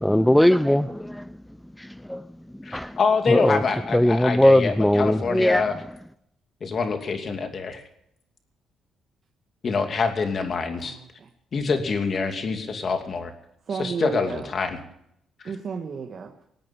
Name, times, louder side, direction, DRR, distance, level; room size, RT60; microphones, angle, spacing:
voice 1, 0.0-1.3 1.8-2.2 2.6-3.0 3.3-3.6 3.9-5.6, left 1 dB, 5° left, 0.5 m, -20 dB
voice 2, 2.6-5.7 6.6-7.8 9.6-11.0 11.5-13.3 13.8-14.8, left 5 dB, 50° left, 2.7 m, -26 dB
voice 3, 10.8-11.3 13.7-14.5 15.4-16.3, right 5 dB, 50° right, 1.5 m, -33 dB
20.5 x 8.9 x 7.2 m
cardioid pair, 90°, 0 cm